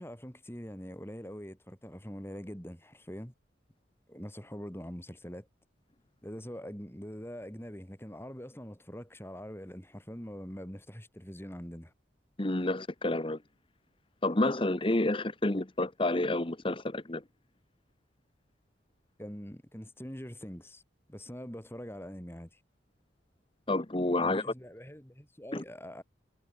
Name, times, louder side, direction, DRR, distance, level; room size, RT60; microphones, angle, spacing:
voice 1, 0.0-3.3 4.1-5.5 6.2-11.9 19.2-20.8 21.1-22.6 24.2-26.0, equal, 10° left, 4.5 m, -43 dB
voice 2, 12.4-13.4 14.2-17.2 23.7-24.4 25.5-25.6, left 2 dB, 30° left, 1.1 m, -29 dB
head